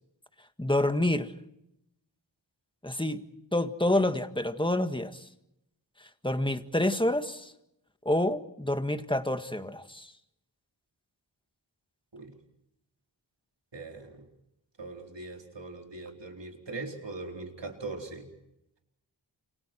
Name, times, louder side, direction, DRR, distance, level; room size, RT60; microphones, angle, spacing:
voice 1, 0.6-1.3 2.8-3.2 3.5-5.2 6.2-7.5 8.1-10.1, left 1 dB, 10° left, 1.8 m, -28 dB
voice 2, 13.7-14.2 14.8-18.2, right 3 dB, 70° right, 4.3 m, -40 dB
30.0 x 28.0 x 4.6 m
wide cardioid pair, 65°, 44 cm